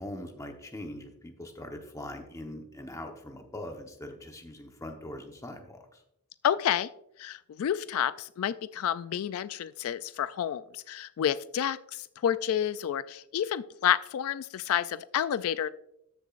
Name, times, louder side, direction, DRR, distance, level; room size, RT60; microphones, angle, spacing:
voice 1, 0.0-6.0, left 1 dB, 15° left, 3 dB, 0.9 m, -42 dB
voice 2, 6.4-6.9 7.2-15.7, left 9 dB, 70° left, 15 dB, 0.3 m, -29 dB
13.5 x 6.9 x 2.5 m, 0.80 s
head